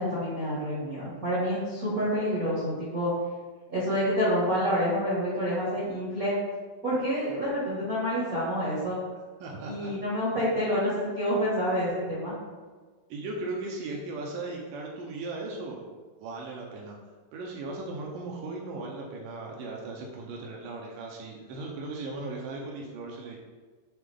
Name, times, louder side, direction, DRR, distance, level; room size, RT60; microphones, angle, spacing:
voice 1, 0.0-3.1 3.7-6.3 6.8-9.0 9.6-12.3, equal, 55° right, -9 dB, 0.9 m, -28 dB
voice 2, 9.4-9.9 13.1-15.8 16.2-17.0 17.3-23.4, right 2 dB, 80° right, -1 dB, 1.9 m, -37 dB
7.6 x 3.7 x 3.6 m, 1.4 s
omnidirectional pair, 4.8 m